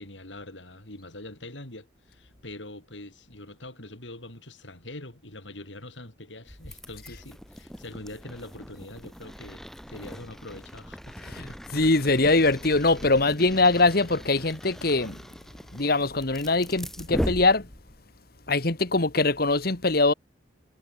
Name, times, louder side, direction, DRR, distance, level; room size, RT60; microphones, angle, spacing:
voice 1, 0.0-11.6, left 1 dB, 90° left, 6.6 m, -43 dB
sound 1, 6.5-18.0, equal, ahead, 3.8 m, -39 dB
voice 2, 11.2-15.2 15.7-17.7 18.5-20.1, left 3 dB, 55° left, 1.9 m, -22 dB
head